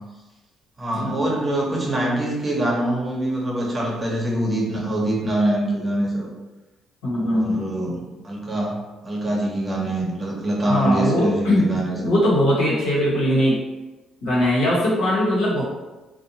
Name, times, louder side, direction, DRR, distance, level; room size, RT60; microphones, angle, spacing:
voice 1, 0.8-6.3 7.1-8.0 8.2-12.1, right 1 dB, 30° right, -2 dB, 0.8 m, -24 dB
voice 2, 7.0-7.7 10.7-11.7 12.0-13.6 14.2-15.6, left 1 dB, 85° left, -7 dB, 1.0 m, -20 dB
2.6 x 2.2 x 2.7 m, 1.1 s
supercardioid pair, 60°, 0 cm